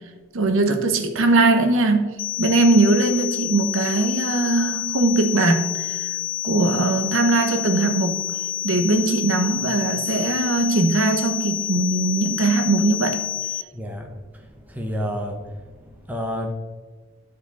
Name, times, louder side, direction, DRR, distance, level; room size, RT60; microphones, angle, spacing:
voice 1, 0.3-2.1 2.4-6.1 6.4-8.2 8.6-13.2, right 2 dB, 65° right, 6 dB, 0.8 m, -20 dB
sound 1, 2.2-13.6, left 12 dB, 60° left, 0.4 m, -28 dB
voice 2, 13.7-14.1 14.7-15.4 15.8-16.5, equal, 5° right, 2 dB, 0.7 m, -29 dB
12.0 x 4.8 x 4.1 m, 1.4 s
head